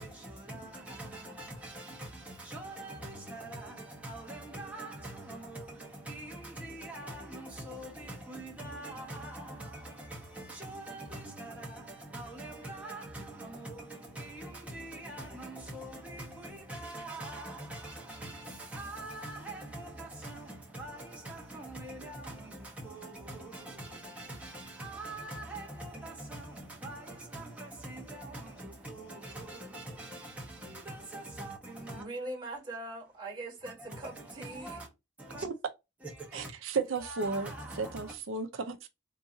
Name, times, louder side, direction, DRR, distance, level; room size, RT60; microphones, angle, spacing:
voice 1, 0.0-32.0 33.6-34.9 35.2-35.4 36.0-36.5 37.0-38.1, right 1 dB, 5° right, 1.0 m, -43 dB
voice 2, 31.9-34.8, right 2 dB, 20° right, 1.3 m, -41 dB
voice 3, 36.3-38.9, right 4 dB, 90° right, 0.6 m, -34 dB
3.7 x 2.7 x 2.7 m
head